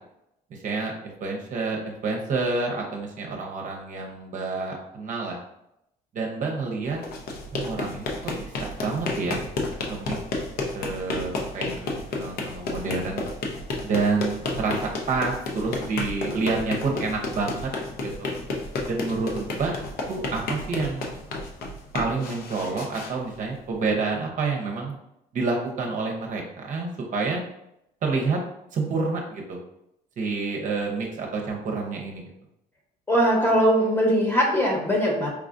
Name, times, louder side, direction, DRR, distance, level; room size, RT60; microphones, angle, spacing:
voice 1, 0.5-5.4 6.1-7.0 7.5-9.4 9.9-10.2 10.7-13.3 13.8-14.8 15.1-17.7 18.0-18.3 18.9-19.7 20.1-21.2 21.9-25.0 25.3-27.4 28.0-28.4 28.7-29.6 30.2-32.2, right 4 dB, 50° right, 0 dB, 0.7 m, -28 dB
sound 1, 6.9-23.9, left 3 dB, 65° left, 0.6 m, -32 dB
voice 2, 33.1-35.3, equal, 15° left, -2 dB, 1.0 m, -21 dB
4.6 x 2.4 x 2.5 m, 0.81 s
cardioid pair, 110°, 17 cm